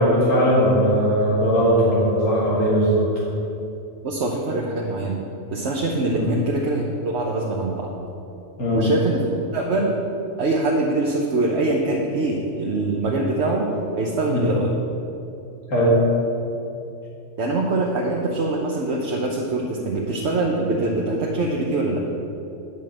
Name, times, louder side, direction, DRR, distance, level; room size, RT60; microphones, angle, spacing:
voice 1, 0.0-3.1 6.1-6.3 8.6-8.9 14.3-14.5 15.7-16.0, equal, 85° left, -8 dB, 2.3 m, -19 dB
voice 2, 4.0-5.2 5.5-7.9 8.7-9.3 9.5-10.0 10.4-14.7 17.4-22.0, right 2 dB, 60° right, -2 dB, 1.2 m, -23 dB
9.5 x 5.4 x 7.7 m, 2.7 s
omnidirectional pair, 1.3 m